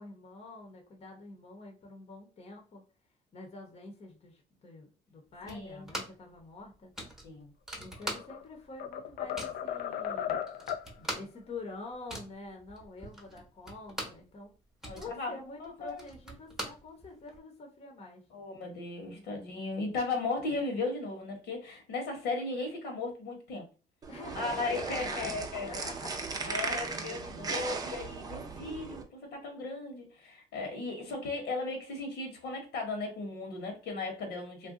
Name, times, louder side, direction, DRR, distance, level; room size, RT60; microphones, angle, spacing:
voice 1, 0.0-2.8 3.3-6.9 7.7-10.4 11.1-14.5 14.9-18.2 24.1-25.4 25.6-26.8, left 3 dB, 35° left, 0.9 m, -46 dB
voice 2, 5.5-5.9 7.2-7.5 11.0-11.1 14.8-16.0 18.3-23.6 24.3-25.9 26.4-34.7, left 3 dB, 80° left, 1.2 m, -36 dB
sound 1, 5.5-6.3 6.6-6.7 7.0-8.6 8.9-9.7 10.2-10.3 10.5-14.3 14.6-17.4, right 1 dB, 5° right, 0.9 m, -42 dB
sound 2, 7.9-8.4 8.8-10.9, left 9 dB, 65° left, 0.4 m, -35 dB
sound 3, 24.0-29.0, right 4 dB, 20° right, 0.5 m, -37 dB
2.5 x 2.3 x 3.7 m
cardioid pair, 110°, 17 cm